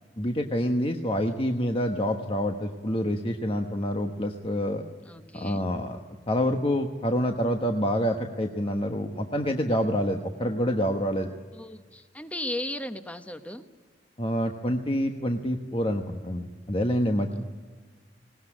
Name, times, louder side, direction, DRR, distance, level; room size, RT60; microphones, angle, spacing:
voice 1, 0.2-4.8 5.3-6.0 6.3-11.3 14.2-17.4, equal, 30° left, 3 dB, 1.2 m, -27 dB
voice 2, 5.0-5.6 11.5-13.6 17.4-17.5, left 1 dB, 10° left, 9 dB, 1.1 m, -36 dB
20.0 x 19.5 x 10.0 m, 1.5 s
head